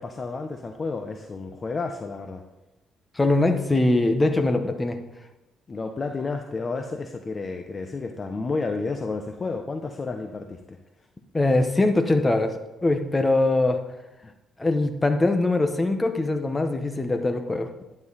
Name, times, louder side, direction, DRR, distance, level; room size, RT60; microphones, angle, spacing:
voice 1, 0.0-2.4 5.7-10.8 14.2-14.3, left 3 dB, 35° left, 5 dB, 0.9 m, -31 dB
voice 2, 3.1-5.0 11.3-12.5 12.8-13.8 14.6-17.7, left 2 dB, 20° left, 6 dB, 1.3 m, -22 dB
11.0 x 9.4 x 4.1 m, 0.97 s
cardioid pair, 90°, 0 cm